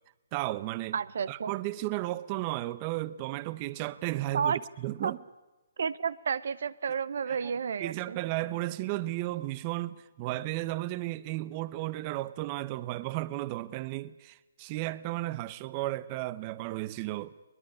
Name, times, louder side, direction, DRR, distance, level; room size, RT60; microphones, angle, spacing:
voice 1, 0.3-1.0 1.3-5.2 7.3-7.5 7.8-17.3, right 17 dB, 30° right, 0.8 m, -34 dB
voice 2, 0.9-1.5 4.3-4.6 5.0-5.1 5.8-8.2, right 6 dB, 65° right, 0.8 m, -31 dB
22.0 x 20.5 x 9.9 m
hypercardioid pair, 150°, 0 cm